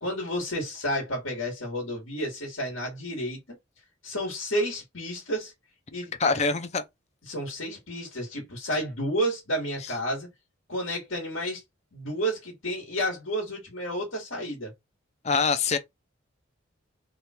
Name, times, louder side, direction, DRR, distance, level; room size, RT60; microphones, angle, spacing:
voice 1, 0.0-3.4 4.0-5.5 5.9-6.4 7.3-10.3 10.7-11.6 11.9-14.7, equal, 85° left, 1.7 m, -31 dB
voice 2, 6.2-6.8 15.2-15.8, left 5 dB, 35° left, 0.5 m, -24 dB
3.4 x 2.4 x 4.3 m
head